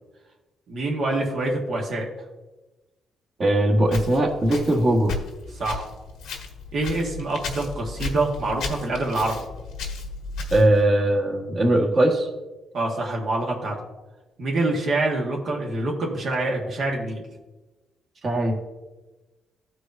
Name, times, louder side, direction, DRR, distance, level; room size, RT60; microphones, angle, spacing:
voice 1, 0.7-2.1 5.6-5.9 6.7-9.3 12.7-13.8 14.4-17.2, right 2 dB, 60° right, -2 dB, 1.4 m, -26 dB
voice 2, 3.4-5.1 10.5-12.3 18.2-18.5, right 1 dB, 40° right, -1 dB, 1.5 m, -20 dB
Walk footsteps, 3.9-10.9, left 3 dB, 80° left, 1.4 m, -35 dB
14.0 x 4.8 x 2.6 m, 1.1 s
cardioid pair, 90°, 0 cm